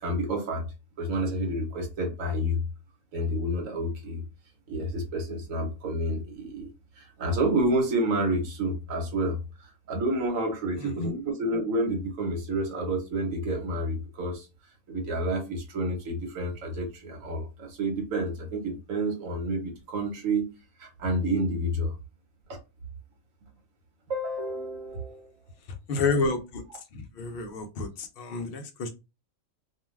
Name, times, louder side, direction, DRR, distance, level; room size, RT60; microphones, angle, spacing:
voice 1, 0.0-0.6 1.0-2.6 3.1-4.2 4.7-6.7 7.0-9.4 9.9-14.5 14.9-20.5 20.8-21.9 22.5-22.6 24.1-25.3, right 1 dB, 65° right, 1.2 m, -29 dB
voice 2, 10.8-11.1 25.9-26.6 26.9-28.9, left 3 dB, 70° left, 0.5 m, -30 dB
2.6 x 2.2 x 3.1 m
omnidirectional pair, 1.6 m